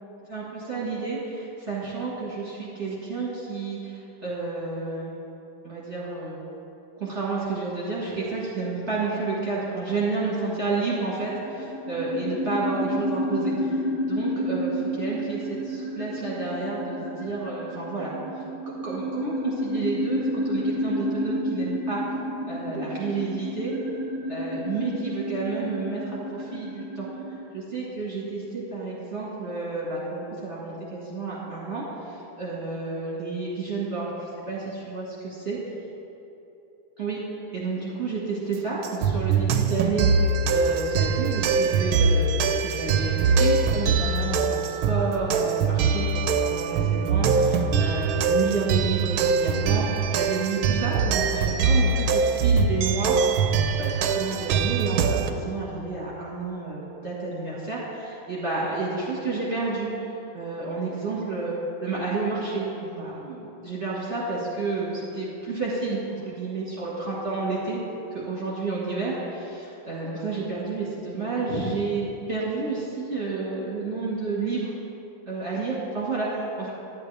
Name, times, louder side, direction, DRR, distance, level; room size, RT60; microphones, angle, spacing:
voice 1, 0.3-5.2 5.6-6.4 7.0-18.1 18.8-22.1 22.5-23.7 24.3-27.1 27.5-35.6 37.0-37.2 37.5-40.1 40.5-53.3 53.6-67.8 68.1-74.7 75.3-76.7, right 3 dB, 35° right, -7 dB, 1.6 m, -30 dB
sound 1, 11.1-27.4, equal, 60° right, 1.1 m, -30 dB
sound 2, 38.8-55.3, right 5 dB, 85° right, 1.4 m, -23 dB
11.5 x 10.0 x 3.3 m, 3.0 s
omnidirectional pair, 2.2 m